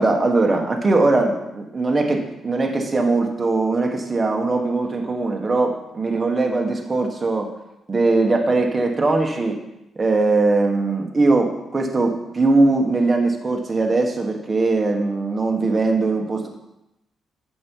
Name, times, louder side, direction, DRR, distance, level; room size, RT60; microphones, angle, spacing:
voice 1, 0.0-7.5 7.9-9.6 9.9-16.5, right 3 dB, 20° right, 2 dB, 1.4 m, -20 dB
10.5 x 6.8 x 4.7 m, 0.89 s
cardioid pair, 145°, 0 cm